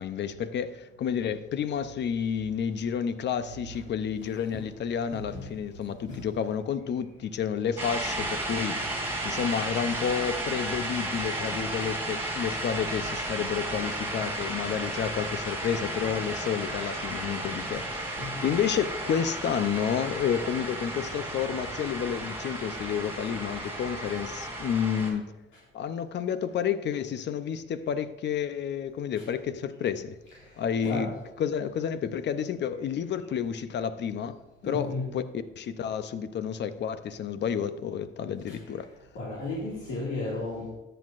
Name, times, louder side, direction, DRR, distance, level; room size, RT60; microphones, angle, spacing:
voice 1, 0.0-8.8 9.2-25.3 25.7-30.2 30.6-31.1 31.4-34.4 34.6-35.2 35.6-38.9, left 8 dB, 60° left, 12 dB, 0.7 m, -30 dB
voice 2, 5.1-5.5 6.1-6.2 18.2-18.4 29.2-29.3 30.8-31.1 34.6-35.1 38.5-38.6 39.1-40.7, left 2 dB, 75° left, -5 dB, 2.1 m, -34 dB
sound 1, 7.8-25.1, right 1 dB, 10° right, 3.0 m, -33 dB
13.5 x 7.9 x 2.5 m, 1.0 s
cardioid pair, 90°, 20 cm